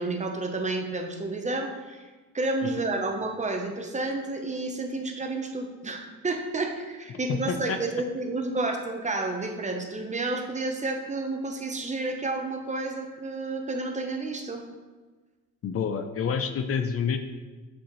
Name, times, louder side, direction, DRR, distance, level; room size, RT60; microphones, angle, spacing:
voice 1, 0.0-14.6, right 2 dB, 25° right, 3 dB, 0.8 m, -30 dB
voice 2, 7.3-7.8 15.6-17.2, left 6 dB, 50° left, 8 dB, 0.5 m, -28 dB
7.3 x 4.4 x 3.1 m, 1.3 s
cardioid pair, 90°, 30 cm